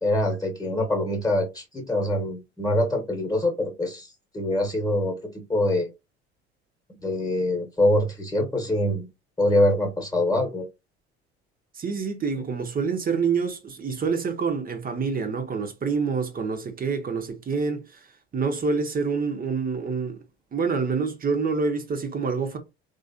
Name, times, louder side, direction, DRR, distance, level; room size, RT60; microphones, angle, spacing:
voice 1, 0.0-4.1 4.3-5.1 5.5-5.9 7.0-9.1 9.4-10.7, left 1 dB, 10° left, 1.2 m, -24 dB
voice 2, 11.7-18.1 18.3-20.2 20.5-22.6, right 5 dB, 25° right, 0.9 m, -27 dB
3.2 x 2.5 x 2.6 m
figure-of-eight pair, 65°, 33 cm